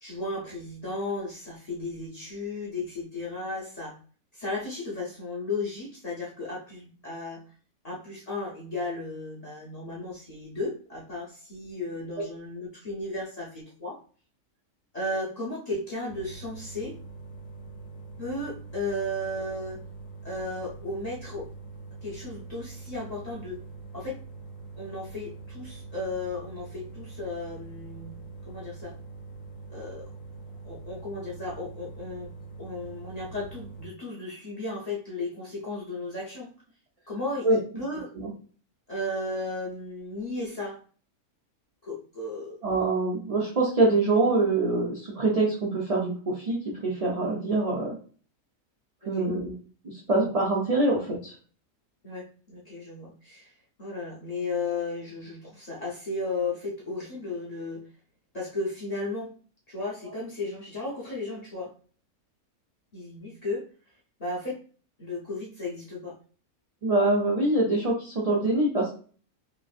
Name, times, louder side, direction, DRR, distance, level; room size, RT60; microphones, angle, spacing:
voice 1, 0.0-4.0 4.3-7.4 7.8-14.0 14.9-16.9 18.2-19.8 20.2-21.5 22.0-23.6 23.9-24.1 24.8-28.1 28.4-28.9 29.7-30.1 30.6-32.3 32.6-36.5 37.1-38.1 38.9-40.8 41.8-42.6 49.0-49.3 52.0-53.5 53.8-57.8 58.3-59.3 59.7-61.7 62.9-63.6 64.2-64.6 65.0-66.1, left 2 dB, 35° left, -5 dB, 0.7 m, -34 dB
sound 1, 16.1-33.9, right 4 dB, 65° left, 1.0 m, -44 dB
voice 2, 42.6-48.0 49.0-49.5 49.8-51.3 66.8-68.9, right 2 dB, 65° right, -4 dB, 0.3 m, -25 dB
3.0 x 2.5 x 2.4 m, 0.41 s
omnidirectional pair, 1.6 m